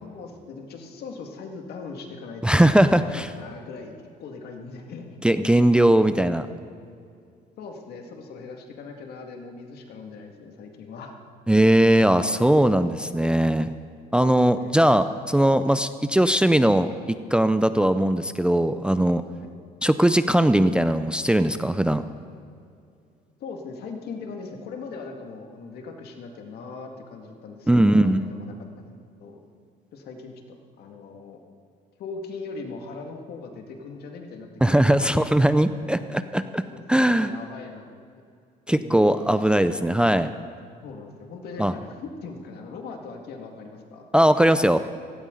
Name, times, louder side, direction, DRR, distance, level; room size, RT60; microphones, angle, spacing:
voice 1, 0.0-5.2 7.6-11.1 14.2-14.9 19.4-19.5 23.4-28.9 29.2-29.4 29.9-31.4 32.0-35.1 36.7-36.8 37.2-37.8 38.7-39.5 40.8-44.0, left 4 dB, 70° left, 3 dB, 2.1 m, -40 dB
voice 2, 2.4-3.3 5.2-6.5 11.5-13.7 14.1-19.2 19.8-22.0 27.7-28.3 34.6-36.6 36.9-37.3 38.7-40.3 41.6-41.7 44.1-44.8, right 1 dB, 5° right, 11 dB, 0.4 m, -19 dB
16.5 x 16.5 x 3.9 m, 2.4 s
cardioid pair, 110°, 17 cm